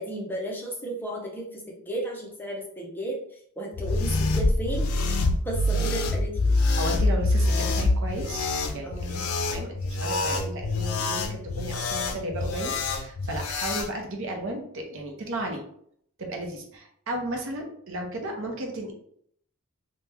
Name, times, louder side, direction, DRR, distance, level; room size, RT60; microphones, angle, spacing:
voice 1, 0.0-3.2 3.6-4.9 5.4-6.6 8.8-9.1, right 1 dB, 10° left, -2 dB, 0.5 m, -34 dB
sound 1, 3.7-13.9, left 2 dB, 75° left, 0.4 m, -26 dB
voice 2, 6.8-15.6 16.2-18.9, right 1 dB, 60° right, 2 dB, 0.6 m, -34 dB
2.9 x 2.2 x 3.4 m, 0.66 s
head